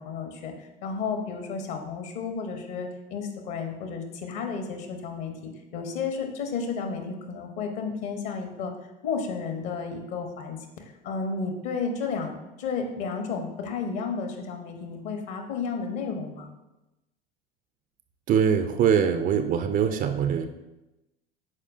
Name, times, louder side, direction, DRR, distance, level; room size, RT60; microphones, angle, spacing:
voice 1, 0.0-8.7 9.0-10.6 11.0-12.3 12.6-16.5, left 5 dB, 50° left, 5 dB, 1.2 m, -32 dB
voice 2, 18.3-20.5, right 7 dB, 30° right, 8 dB, 0.4 m, -23 dB
12.0 x 4.7 x 2.6 m, 0.99 s
figure-of-eight pair, 70°, 30 cm